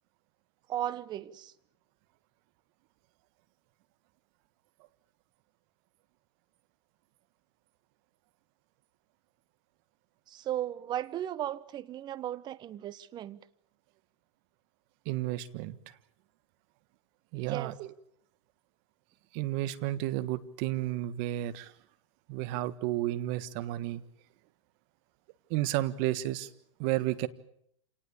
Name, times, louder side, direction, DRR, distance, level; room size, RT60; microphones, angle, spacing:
voice 1, 0.7-1.5 10.3-13.4 17.3-17.8, right 12 dB, 25° right, 1.1 m, -36 dB
voice 2, 15.0-15.8 17.3-17.9 19.3-21.7 22.3-24.0 25.5-26.5 26.8-27.3, right 15 dB, 45° right, 1.5 m, -32 dB
28.0 x 19.0 x 8.5 m
hypercardioid pair, 120°, 16 cm